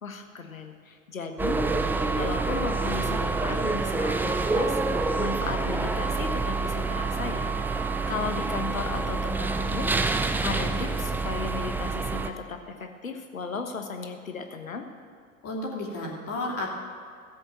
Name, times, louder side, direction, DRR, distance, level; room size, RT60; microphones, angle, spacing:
voice 1, 0.0-1.6 2.1-9.9 10.4-14.9, left 4 dB, 80° left, 5 dB, 1.3 m, -36 dB
sound 1, 1.4-12.3, right 3 dB, 5° right, 0.5 m, -27 dB
voice 2, 15.4-16.7, left 2 dB, 35° left, -2 dB, 2.6 m, -32 dB
15.0 x 7.8 x 7.4 m, 2.2 s
figure-of-eight pair, 80°, 40 cm